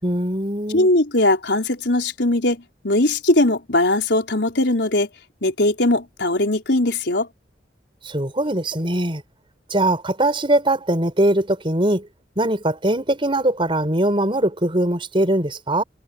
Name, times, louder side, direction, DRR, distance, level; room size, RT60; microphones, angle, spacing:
voice 1, 0.0-0.9 8.1-9.2 9.7-12.1 12.4-15.8, right 1 dB, 30° right, 5.2 m, -21 dB
voice 2, 0.7-5.1 5.4-7.3, left 1 dB, 70° left, 4.5 m, -20 dB
head